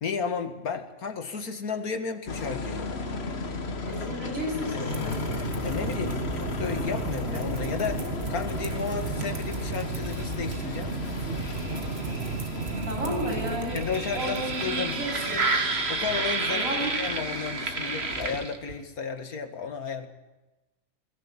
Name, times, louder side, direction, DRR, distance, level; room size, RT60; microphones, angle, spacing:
voice 1, 0.0-2.9 5.6-11.0 13.7-15.0 15.9-20.1, left 5 dB, 80° left, 7 dB, 2.3 m, -33 dB
sound 1, 2.3-18.4, left 4 dB, 45° left, 1.6 m, -36 dB
voice 2, 3.9-5.3 12.8-15.5 16.5-16.9, equal, 70° right, -1 dB, 8.5 m, -33 dB
sound 2, 4.9-18.8, right 3 dB, 45° right, 2.0 m, -31 dB
21.5 x 18.0 x 8.5 m, 1.1 s
omnidirectional pair, 1.5 m